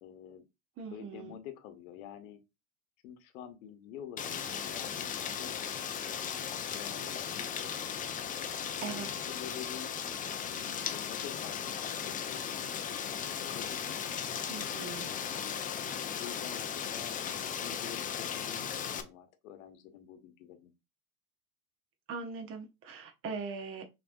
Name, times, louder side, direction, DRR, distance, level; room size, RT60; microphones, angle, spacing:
voice 1, 0.0-0.4 0.9-2.4 3.0-7.7 8.6-9.9 10.3-14.1 15.0-15.6 16.2-20.7, left 9 dB, 65° left, 1.1 m, -49 dB
voice 2, 0.8-1.3 8.8-9.3 14.5-15.1 22.1-23.8, right 5 dB, 30° right, 0.7 m, -41 dB
Rain, 4.2-19.0, left 8 dB, 20° left, 0.5 m, -37 dB
6.1 x 2.9 x 2.5 m
hypercardioid pair, 85°, 45 cm